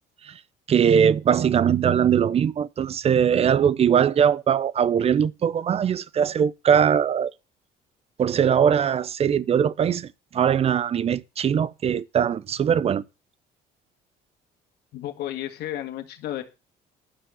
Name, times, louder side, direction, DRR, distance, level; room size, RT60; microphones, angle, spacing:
voice 1, 0.7-7.3 8.2-13.0, right 8 dB, 35° right, 0.5 m, -21 dB
voice 2, 14.9-16.4, left 12 dB, 75° left, 1.8 m, -32 dB
9.7 x 6.0 x 5.6 m
cardioid pair, 110°, 17 cm